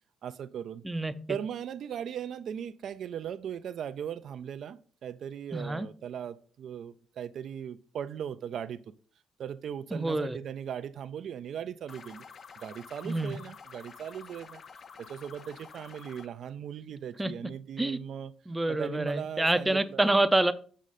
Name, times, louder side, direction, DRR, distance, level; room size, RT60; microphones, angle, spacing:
voice 1, 0.2-0.8 1.3-8.8 9.4-12.2 12.6-14.6 15.0-18.3 18.7-20.0, right 8 dB, 65° right, 0.4 m, -38 dB
voice 2, 0.8-1.4 5.5-5.9 9.9-10.4 13.0-13.4 17.2-17.3 17.8-18.0 18.5-20.5, right 2 dB, 10° right, 0.6 m, -27 dB
sound 1, 11.9-16.3, left 6 dB, 50° left, 0.5 m, -49 dB
6.5 x 6.2 x 4.1 m
cardioid pair, 90°, 0 cm